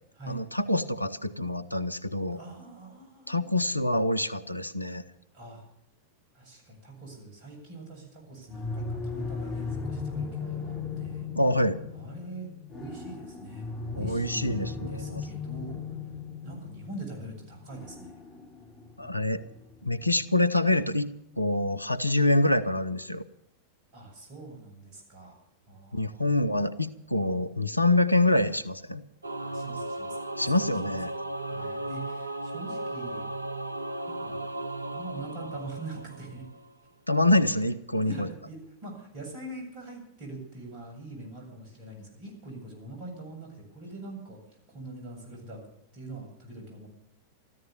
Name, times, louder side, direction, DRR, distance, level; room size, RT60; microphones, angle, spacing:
voice 1, 0.3-2.4 3.3-5.0 11.4-11.8 14.0-15.2 19.0-19.4 19.8-21.1 21.4-23.2 25.9-29.0 30.4-31.1 37.1-38.3, left 2 dB, 85° left, 13 dB, 0.8 m, -26 dB
voice 2, 2.3-3.6 5.3-5.6 6.3-11.3 11.9-15.8 16.4-18.1 23.9-26.6 29.4-30.2 30.5-31.0 31.4-33.3 34.0-34.4 34.9-36.5 37.5-37.7 38.0-45.7 45.9-46.9, right 2 dB, 45° right, 2 dB, 7.9 m, -43 dB
sound 1, 8.5-21.3, left 4 dB, 25° left, 7.3 m, -38 dB
Singing / Musical instrument, 29.2-36.7, right 1 dB, 85° right, 0.7 m, -36 dB
14.0 x 13.5 x 7.1 m, 0.78 s
figure-of-eight pair, 90°, 0 cm